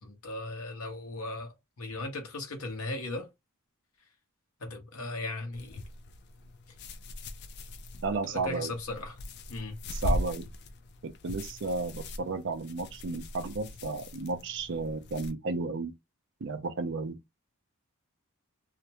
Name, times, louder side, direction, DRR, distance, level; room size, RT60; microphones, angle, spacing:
voice 1, 0.0-3.3 4.6-5.8 8.2-9.2 9.5-9.8, left 2 dB, 70° left, 0.9 m, -37 dB
sound 1, 5.5-15.3, left 1 dB, 50° left, 0.4 m, -39 dB
voice 2, 8.0-8.7 9.9-10.4 11.0-15.9 16.4-17.3, right 3 dB, 55° right, 0.5 m, -33 dB
2.5 x 2.1 x 2.8 m
head